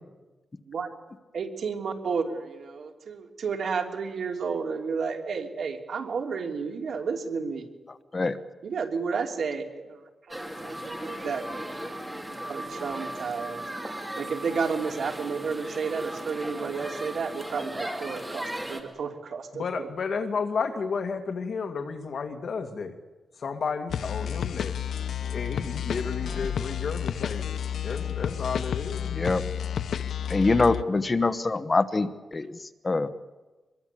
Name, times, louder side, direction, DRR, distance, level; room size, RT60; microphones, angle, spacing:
voice 1, 1.3-7.7 8.6-10.0 10.3-13.6 14.2-19.9, right 5 dB, 65° right, 3 dB, 3.1 m, -32 dB
sound 1, 10.3-18.8, right 1 dB, 10° right, 2.8 m, -37 dB
voice 2, 19.5-23.0 23.4-24.8 25.3-29.2, left 5 dB, 55° left, 5 dB, 2.3 m, -32 dB
Stringy Lead Loop, 23.9-30.8, left 9 dB, 80° left, 0.7 m, -31 dB
voice 3, 29.1-29.4 30.3-33.1, left 3 dB, 25° left, 10 dB, 1.1 m, -24 dB
24.0 x 22.0 x 8.5 m, 1.2 s
wide cardioid pair, 150°, 0 cm